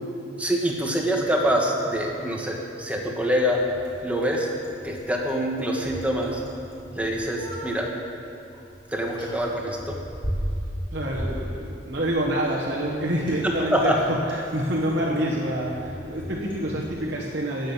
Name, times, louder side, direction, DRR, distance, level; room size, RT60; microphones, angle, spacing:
voice 1, 0.4-3.7 4.0-4.5 4.8-6.4 6.9-7.9 8.9-10.0 13.4-14.0, equal, 5° right, -1 dB, 1.6 m, -25 dB
Bicycle, 0.7-17.0, equal, 25° left, 3.6 m, -38 dB
voice 2, 10.9-17.7, equal, 55° right, -6 dB, 1.6 m, -27 dB
19.0 x 7.7 x 7.4 m, 2.6 s
head